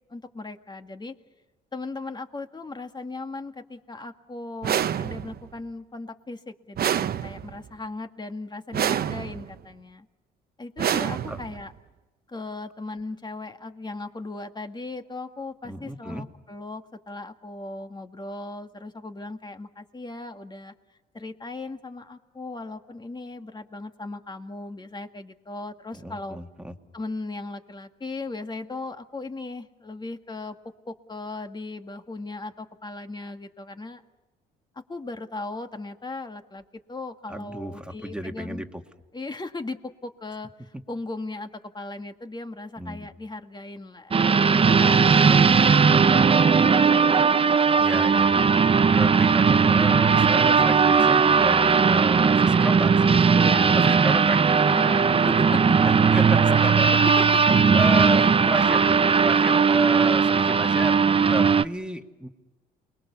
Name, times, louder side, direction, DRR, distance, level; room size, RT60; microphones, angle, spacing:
voice 1, 0.1-1.1 1.7-10.1 10.6-11.7 12.3-20.7 21.1-26.4 26.9-30.6 30.9-34.0 34.9-38.6 39.1-41.5 41.7-47.7 53.3-54.2 54.6-57.6 58.2-58.3, left 2 dB, 25° left, 6 dB, 2.1 m, -37 dB
sound 1, 4.6-5.5 6.8-7.7 8.7-9.5 10.8-11.7, right 9 dB, 55° right, 1.0 m, -27 dB
voice 2, 15.6-16.2 26.0-26.7 37.3-38.7 42.8-43.0 45.3-45.4 47.8-48.6 48.8-53.2 53.7-54.4 55.9-56.7 57.7-62.3, right 1 dB, 5° right, 4 dB, 2.3 m, -32 dB
sound 2, 44.1-61.6, right 5 dB, 30° right, 0.7 m, -18 dB
29.0 x 21.5 x 7.0 m, 1.1 s
supercardioid pair, 70°, 18 cm